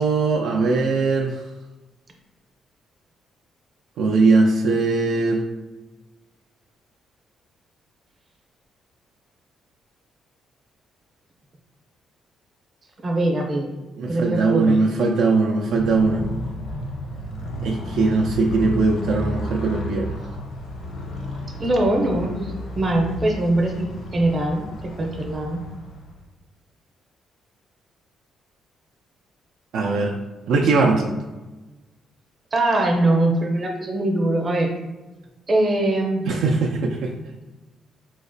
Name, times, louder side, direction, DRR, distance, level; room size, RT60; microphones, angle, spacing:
voice 1, 0.0-1.3 4.0-5.4 14.0-16.3 17.6-20.2 29.7-30.2 30.5-31.1 36.3-37.1, right 3 dB, 80° right, 0 dB, 0.3 m, -20 dB
voice 2, 13.0-13.7 14.1-14.8 21.6-24.7 25.0-25.6 32.5-34.7 35.5-36.2, right 1 dB, 35° right, 1 dB, 0.6 m, -22 dB
Motorcycle, 15.6-26.3, left 1 dB, 80° left, 0.6 m, -32 dB
3.7 x 2.1 x 2.6 m, 1.1 s
cardioid pair, 90°, 0 cm